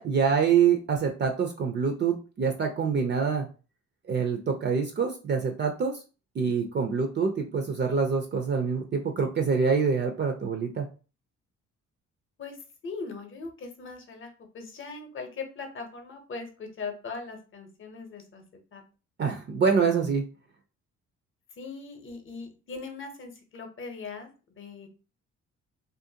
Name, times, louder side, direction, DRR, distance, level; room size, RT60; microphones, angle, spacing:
voice 1, 0.0-3.5 4.1-5.9 6.4-10.9 19.2-20.2, right 6 dB, 35° right, 4 dB, 0.4 m, -25 dB
voice 2, 12.8-18.4 18.7-18.8 21.6-24.9, left 4 dB, 40° left, 5 dB, 0.7 m, -40 dB
2.5 x 2.1 x 2.7 m, 0.34 s
cardioid pair, 90°, 30 cm